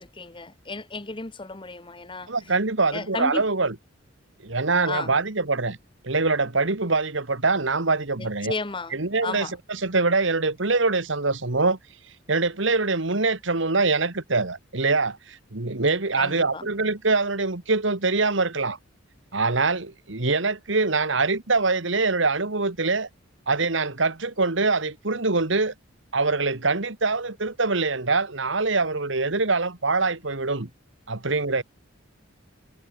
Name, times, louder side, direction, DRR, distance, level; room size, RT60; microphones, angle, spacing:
voice 1, 0.0-2.3 2.9-3.4 4.8-5.1 8.2-8.9 9.2-9.5 16.2-16.7, left 3 dB, 25° left, 1.6 m, -33 dB
voice 2, 2.3-3.8 4.4-5.8 6.0-8.5 8.9-11.8 12.3-18.8 19.3-23.1 23.5-25.7 26.1-30.7 31.1-31.6, right 3 dB, 65° right, 1.8 m, -24 dB
head